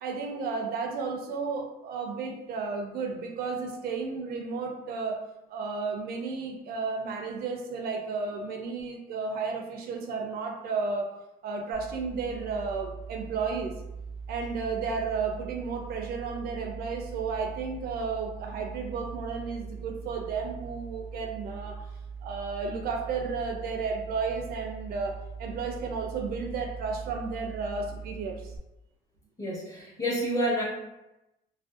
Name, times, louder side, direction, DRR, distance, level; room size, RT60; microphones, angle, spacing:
voice 1, 0.0-5.2 5.5-11.1 11.4-13.7 14.3-21.8 22.2-28.5, right 4 dB, 65° right, 2 dB, 0.4 m, -33 dB
sound 1, 11.7-28.6, right 5 dB, 55° left, 0.4 m, -41 dB
voice 2, 29.4-30.6, equal, 20° left, -5 dB, 0.9 m, -29 dB
2.5 x 2.1 x 2.3 m, 0.93 s
cardioid pair, 110°, 17 cm